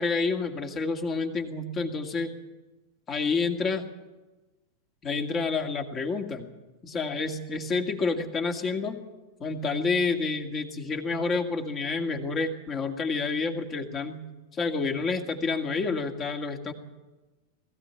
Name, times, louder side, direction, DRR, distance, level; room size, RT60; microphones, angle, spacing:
voice 1, 0.0-2.4 3.1-3.9 5.0-6.5 6.8-9.0 9.4-14.2 14.5-16.7, left 4 dB, 25° left, 4 dB, 2.2 m, -29 dB
20.5 x 15.5 x 8.9 m, 1.2 s
figure-of-eight pair, 90°, 0 cm